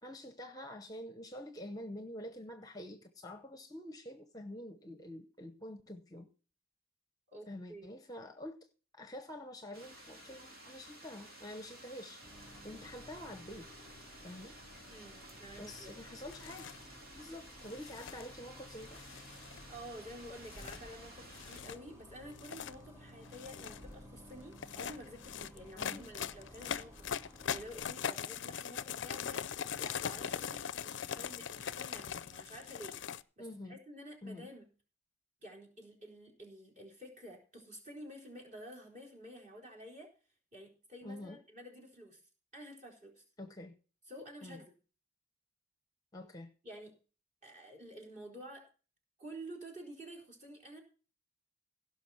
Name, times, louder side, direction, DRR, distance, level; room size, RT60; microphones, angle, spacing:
voice 1, 0.0-6.3 7.5-8.6 8.9-12.3 12.6-13.7 14.2-14.6 15.6-16.7 17.1-19.0 25.8-26.1 33.4-33.8 34.2-34.5 41.0-41.4 43.4-43.7 44.4-44.6 46.1-46.5, left 1 dB, 15° left, 7 dB, 0.8 m, -47 dB
voice 2, 7.3-8.0 14.9-16.1 19.7-33.0 33.4-34.7 35.4-40.1 40.5-42.2 42.5-43.2 44.1-44.7 46.6-47.0 47.4-48.7 49.2-50.8, equal, 35° right, 0 dB, 4.1 m, -50 dB
sound 1, 9.7-21.6, right 1 dB, 80° right, 3.9 m, -54 dB
Bus, 12.2-27.8, equal, 15° right, 3.9 m, -55 dB
sound 2, 16.3-16.8 17.7-18.3 18.9-19.7 20.4-20.8 21.3-21.8 22.3-22.7 23.2-23.8 24.5-33.2, left 8 dB, 55° left, 0.5 m, -41 dB
16.5 x 6.0 x 5.6 m, 0.37 s
head